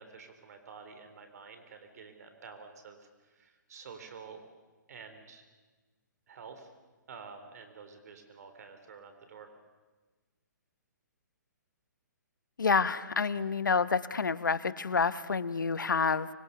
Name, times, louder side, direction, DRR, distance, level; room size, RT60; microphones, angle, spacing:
voice 1, 0.0-4.4 4.9-5.5 6.3-6.7 7.1-9.5, right 5 dB, 55° right, 7 dB, 3.6 m, -49 dB
voice 2, 12.6-16.3, left 5 dB, 85° left, 15 dB, 1.0 m, -28 dB
25.0 x 21.5 x 6.9 m, 1.3 s
hypercardioid pair, 135°, 10 cm